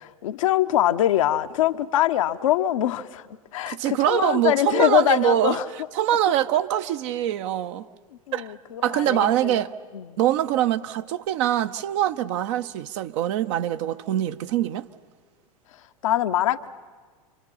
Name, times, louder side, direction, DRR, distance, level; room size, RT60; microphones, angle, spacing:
voice 1, 0.0-3.2 3.5-5.6 8.3-9.6 9.9-10.2 16.0-16.7, left 12 dB, 65° left, 0.9 m, -23 dB
voice 2, 3.7-5.6 5.9-7.9 8.3-8.5 8.8-9.7 10.2-14.9, right 12 dB, 55° right, 0.9 m, -23 dB
28.5 x 25.0 x 5.6 m
figure-of-eight pair, 90°, 18 cm